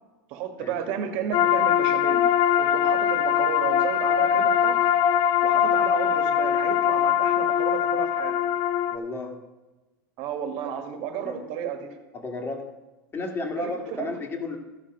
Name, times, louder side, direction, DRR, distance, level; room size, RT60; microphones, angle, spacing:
voice 1, 0.3-2.3 2.6-4.9 5.4-8.3 10.2-12.0 13.6-14.2, right 8 dB, 55° right, 6 dB, 1.7 m, -33 dB
sound 1, 1.3-9.0, left 9 dB, 45° left, 0.7 m, -22 dB
voice 2, 8.9-9.3 11.2-11.4 12.1-12.6 13.1-14.6, left 3 dB, 20° left, 4 dB, 1.8 m, -32 dB
14.5 x 5.1 x 5.9 m, 1.1 s
supercardioid pair, 125°, 11 cm